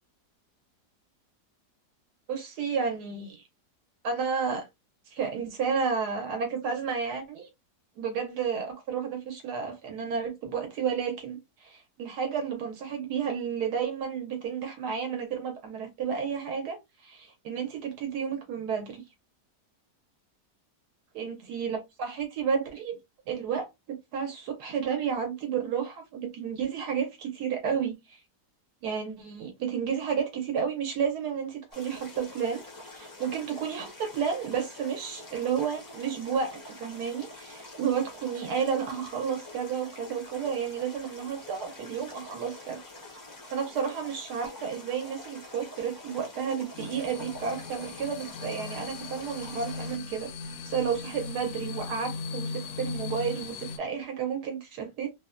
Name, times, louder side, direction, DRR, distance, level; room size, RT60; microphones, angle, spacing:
voice 1, 2.3-3.4 4.0-4.7 5.1-7.5 8.0-16.8 17.4-19.0 21.1-23.0 23.3-28.2 28.8-42.8 43.5-50.3 50.6-55.1, right 6 dB, 75° right, 1.2 m, -31 dB
sound 1, 31.7-50.0, left 2 dB, 30° left, 0.4 m, -46 dB
sound 2, 46.7-53.8, left 4 dB, 70° left, 0.9 m, -38 dB
3.2 x 2.1 x 2.4 m
omnidirectional pair, 1.7 m